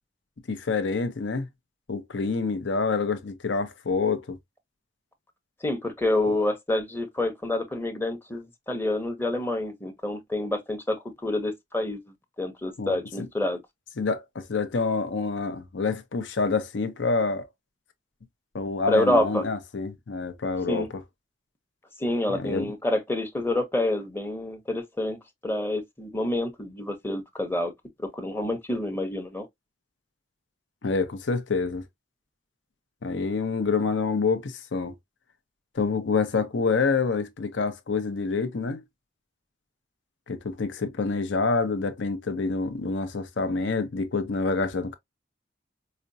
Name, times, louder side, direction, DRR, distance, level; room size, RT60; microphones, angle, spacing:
voice 1, 0.5-1.5 1.9-4.4 12.8-13.3 14.0-17.5 18.5-21.0 22.3-22.7 30.8-31.8 33.0-34.9 35.7-38.8 40.3-45.0, left 4 dB, 85° left, 0.6 m, -27 dB
voice 2, 5.6-12.0 12.4-13.6 18.9-19.4 20.7-20.9 22.0-27.7 28.0-29.5, left 1 dB, 10° left, 0.7 m, -28 dB
4.9 x 2.1 x 2.6 m
head